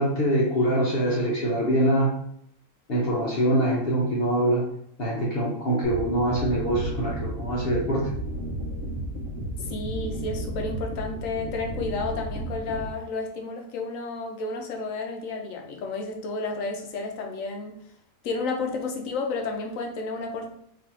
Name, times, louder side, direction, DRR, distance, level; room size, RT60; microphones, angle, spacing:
voice 1, 0.0-2.1 2.9-4.6 5.0-8.1, right 1 dB, 50° left, -4 dB, 0.8 m, -24 dB
sound 1, 5.8-12.9, right 1 dB, 60° right, 1.1 m, -33 dB
voice 2, 9.6-17.8 18.2-20.5, left 3 dB, 70° left, 3 dB, 1.0 m, -31 dB
4.0 x 2.7 x 2.9 m, 0.73 s
omnidirectional pair, 1.5 m